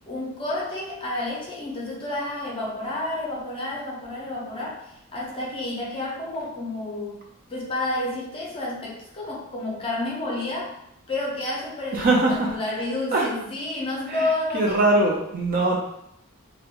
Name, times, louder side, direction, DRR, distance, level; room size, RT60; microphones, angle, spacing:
voice 1, 0.1-7.2 7.5-10.7 11.1-14.8, left 2 dB, 25° left, -4 dB, 0.5 m, -30 dB
voice 2, 11.9-12.6 13.1-13.3 14.1-15.8, right 2 dB, 40° right, -1 dB, 0.4 m, -22 dB
2.4 x 2.1 x 2.7 m, 0.79 s
head